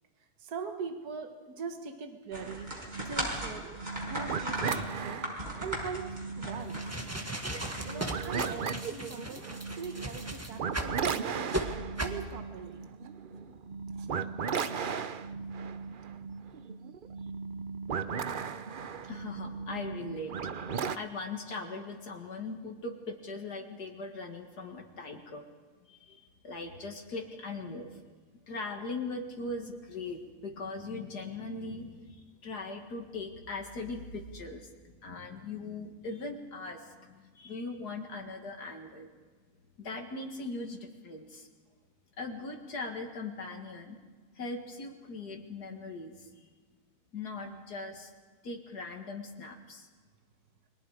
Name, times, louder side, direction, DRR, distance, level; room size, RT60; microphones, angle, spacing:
voice 1, 0.4-2.7 3.0-3.7 3.9-5.2 5.6-6.9 7.8-11.5 11.9-13.1 13.9-14.1 16.5-16.6 17.2-17.3, right 5 dB, 70° right, 6 dB, 1.9 m, -42 dB
sound 1, 2.3-8.4, right 1 dB, 25° right, 5.5 m, -38 dB
sound 2, 2.3-21.0, right 6 dB, 50° right, 0.6 m, -37 dB
sound 3, 6.6-11.0 11.5-11.6 12.0-12.2, right 1 dB, 10° right, 1.6 m, -36 dB
voice 2, 19.1-20.4 20.6-25.4 25.8-28.0 28.5-39.1 39.8-41.5 42.2-44.0 44.4-46.5 47.1-48.1 48.4-49.9, left 3 dB, 75° left, 2 dB, 2.4 m, -40 dB
30.0 x 22.5 x 4.9 m, 1.4 s
omnidirectional pair, 1.7 m